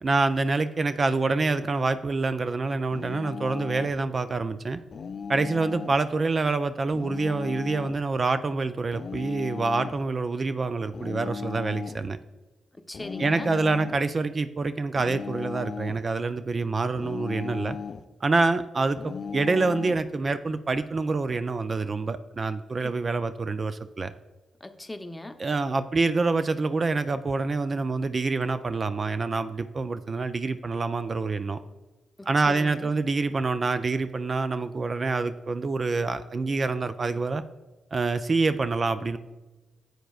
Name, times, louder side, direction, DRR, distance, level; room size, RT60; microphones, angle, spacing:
voice 1, 0.0-4.8 5.3-12.2 13.2-17.8 18.2-24.1 25.4-31.6 32.3-37.4 37.9-39.2, right 3 dB, 45° right, 12 dB, 0.4 m, -26 dB
sound 1, 2.9-4.0 4.9-6.0 6.9-8.1 8.9-10.0 10.9-12.1 12.9-14.1 15.0-16.1 17.0-18.1 19.0-20.1, left 6 dB, 55° left, 0.4 m, -36 dB
voice 2, 12.9-13.5 22.8-22.9 24.6-25.4 32.2-32.9, left 1 dB, 15° left, 8 dB, 0.7 m, -39 dB
11.0 x 7.8 x 2.4 m, 1.2 s
supercardioid pair, 50°, 0 cm